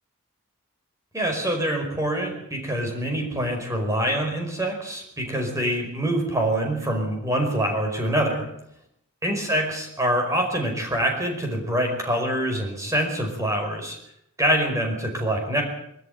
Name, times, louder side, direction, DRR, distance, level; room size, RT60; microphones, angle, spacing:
voice 1, 1.1-8.5 9.2-14.0 14.4-15.6, right 1 dB, 15° right, 2 dB, 5.1 m, -25 dB
22.0 x 13.5 x 9.4 m, 0.75 s
head